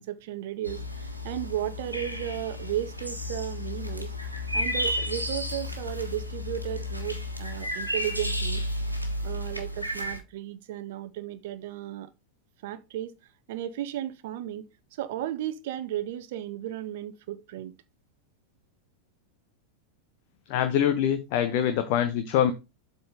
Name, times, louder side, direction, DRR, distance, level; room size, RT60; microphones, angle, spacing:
voice 1, 0.0-4.1 4.5-8.6 9.2-12.1 12.6-13.1 13.5-14.7 14.9-17.7, right 12 dB, 50° right, 0.7 m, -34 dB
sound 1, 0.6-10.2, left 1 dB, 90° right, 1.4 m, -32 dB
voice 2, 20.5-22.5, left 10 dB, 45° left, 0.9 m, -24 dB
7.9 x 4.1 x 5.0 m
figure-of-eight pair, 90°, 0 cm